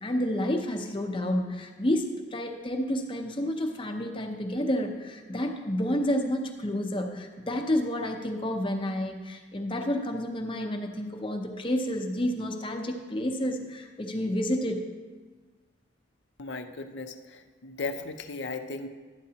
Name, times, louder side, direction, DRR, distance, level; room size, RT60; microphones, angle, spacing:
voice 1, 0.0-14.8, left 1 dB, 25° left, 4 dB, 0.7 m, -30 dB
voice 2, 16.4-18.9, left 3 dB, 65° left, 7 dB, 0.6 m, -36 dB
12.5 x 9.3 x 2.8 m, 1.4 s
head